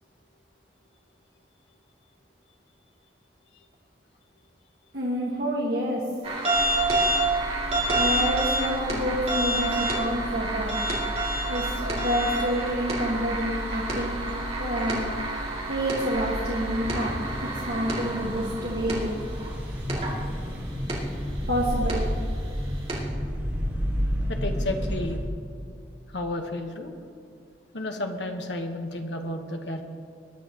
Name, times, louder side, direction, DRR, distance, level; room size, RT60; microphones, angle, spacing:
voice 1, 4.9-6.0 7.9-10.8 11.5-14.2 14.6-15.1 15.7-19.1 21.5-22.1, equal, 65° right, -4 dB, 1.6 m, -28 dB
sound 1, 6.2-19.5 19.9-20.1 20.9-21.0 21.8-21.9 22.9-23.0, right 2 dB, 35° right, 2.6 m, -28 dB
sound 2, 6.5-25.2, equal, 10° right, 1.7 m, -33 dB
voice 2, 24.3-25.2 26.1-26.9 27.7-29.8, left 1 dB, 85° left, 4 dB, 1.3 m, -32 dB
21.5 x 11.0 x 3.0 m, 2.3 s
head